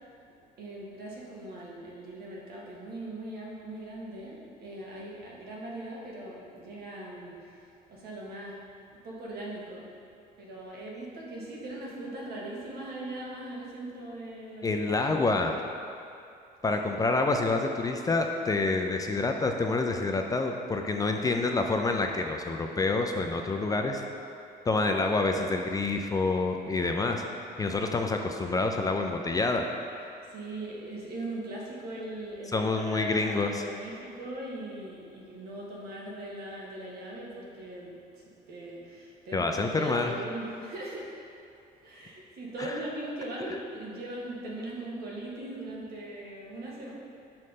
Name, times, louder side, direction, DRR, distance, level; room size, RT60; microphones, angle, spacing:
voice 1, 0.6-8.6 9.0-9.9 10.4-14.9 16.9-17.0 30.2-41.4 41.8-46.9, right 1 dB, 70° right, -4 dB, 1.3 m, -40 dB
voice 2, 14.6-15.6 16.6-24.0 24.7-27.2 27.6-29.7 32.5-33.6 39.3-40.1, left 3 dB, 20° left, 3 dB, 0.3 m, -27 dB
5.7 x 3.2 x 5.3 m, 2.5 s
cardioid pair, 110°, 17 cm